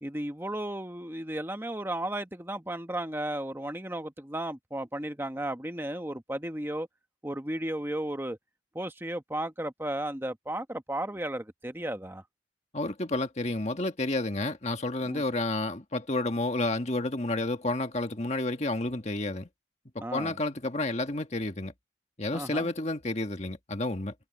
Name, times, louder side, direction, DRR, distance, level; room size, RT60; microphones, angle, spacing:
voice 1, 0.0-6.9 7.2-8.4 8.7-12.2 15.1-15.2 20.0-20.4 22.3-22.7, right 1 dB, 10° right, 1.0 m, -34 dB
voice 2, 12.7-19.5 19.9-21.7 22.2-24.1, left 2 dB, 35° left, 1.6 m, -30 dB
head